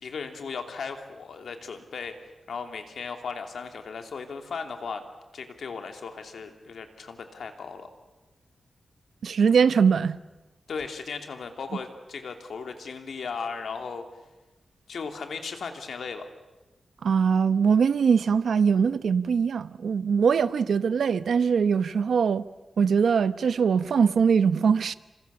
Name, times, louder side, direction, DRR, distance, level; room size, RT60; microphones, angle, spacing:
voice 1, 0.0-2.1 2.5-5.0 5.3-7.9 10.7-14.0 14.9-16.3, left 5 dB, 80° left, 2.9 m, -36 dB
voice 2, 9.2-10.2 17.0-22.4 22.8-24.9, right 6 dB, 85° right, 0.9 m, -22 dB
29.0 x 26.0 x 7.1 m
wide cardioid pair, 105°, 0 cm